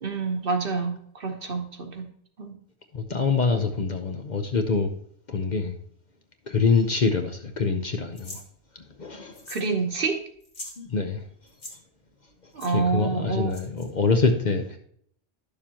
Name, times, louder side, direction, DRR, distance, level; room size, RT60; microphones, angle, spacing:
voice 1, 0.0-2.1 2.4-2.6 9.5-10.2 12.5-13.6, right 4 dB, 55° right, 1.2 m, -27 dB
voice 2, 2.9-4.9 5.3-5.7 6.5-8.4 9.0-9.4 10.8-11.2 12.7-14.8, left 4 dB, 45° left, 0.7 m, -25 dB
sound 1, 8.2-8.4 9.3-9.7 10.0-10.1 10.4-10.8 11.5-11.7 12.6-12.7 13.5-13.9, left 2 dB, 80° left, 2.1 m, -41 dB
11.0 x 6.8 x 2.9 m
omnidirectional pair, 1.2 m